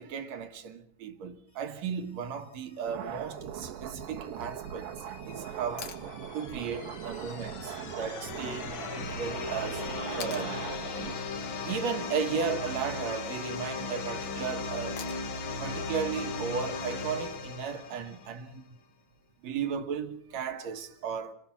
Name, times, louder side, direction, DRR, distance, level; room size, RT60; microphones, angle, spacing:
voice 1, 0.0-6.0 6.3-8.8 9.2-9.9 10.2-10.6 11.7-15.0 15.6-18.6 19.4-21.3, right 6 dB, 60° right, 2.2 m, -35 dB
sound 1, 2.9-11.2, right 9 dB, 80° right, 3.2 m, -40 dB
sound 2, 4.7-18.5, left 4 dB, 50° left, 1.6 m, -37 dB
sound 3, 5.8-6.1 8.3-8.4 10.2-10.5 12.5-13.0 15.0-15.4 17.6-17.7, left 7 dB, 65° left, 1.1 m, -43 dB
28.0 x 19.5 x 6.0 m
omnidirectional pair, 4.1 m